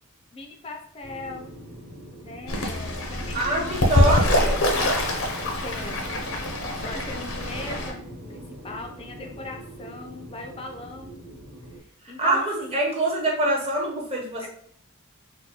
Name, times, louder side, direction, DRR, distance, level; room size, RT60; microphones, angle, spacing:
voice 1, 0.3-1.5 2.2-3.8 5.6-6.0 6.7-8.0 8.3-11.2 11.8-12.7 14.4-14.5, left 2 dB, 25° left, 3 dB, 0.5 m, -39 dB
sound 1, 1.0-11.8, right 1 dB, 85° right, 1.4 m, -42 dB
Fowl / Bird, 2.5-7.9, left 1 dB, 70° left, 0.7 m, -24 dB
voice 2, 3.3-4.6 12.0-14.5, right 1 dB, 30° right, -3 dB, 1.0 m, -25 dB
3.8 x 2.2 x 2.9 m, 0.64 s
head